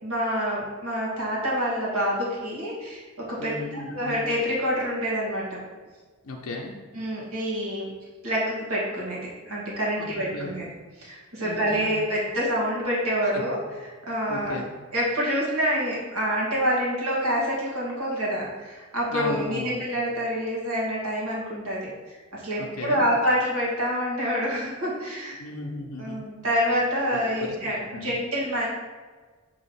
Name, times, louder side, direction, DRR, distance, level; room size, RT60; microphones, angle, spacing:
voice 1, 0.0-5.6 6.9-7.9 8.2-10.7 11.0-14.6 14.9-21.8 22.1-25.4 26.0-28.7, equal, 80° right, -5 dB, 1.8 m, -27 dB
voice 2, 3.4-4.2 6.2-6.8 10.0-10.6 11.4-12.0 13.2-13.4 14.3-14.7 19.1-19.8 22.6-23.1 25.4-26.2 27.1-27.6 27.9-28.2, left 2 dB, 90° left, 0 dB, 0.7 m, -36 dB
6.2 x 3.0 x 5.6 m, 1.4 s
head